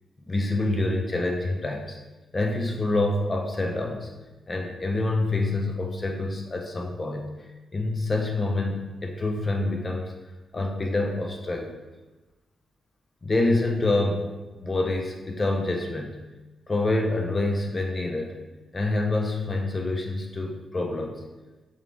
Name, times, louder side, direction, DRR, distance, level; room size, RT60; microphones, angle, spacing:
voice 1, 0.2-2.0 2.3-4.1 4.5-7.3 7.7-10.1 10.5-11.8 13.2-16.2 16.7-18.4 18.7-21.2, left 2 dB, 20° left, 2 dB, 0.4 m, -27 dB
3.7 x 3.3 x 3.6 m, 1.1 s
wide cardioid pair, 165°, 0 cm